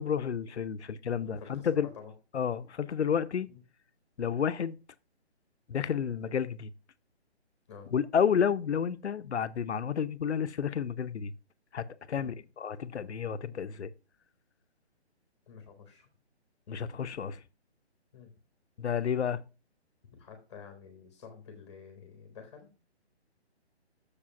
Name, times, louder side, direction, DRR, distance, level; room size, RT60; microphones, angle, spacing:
voice 1, 0.0-1.9 2.3-3.5 4.2-4.8 5.7-6.7 7.9-11.3 11.7-13.9 16.7-17.4 18.8-19.4, left 7 dB, 85° left, 0.7 m, -31 dB
voice 2, 1.3-2.1 3.5-3.6 7.7-7.9 12.2-12.4 15.5-16.1 18.1-18.3 20.1-22.7, left 6 dB, 25° left, 1.3 m, -49 dB
6.8 x 4.9 x 5.6 m
hypercardioid pair, 165°, 33 cm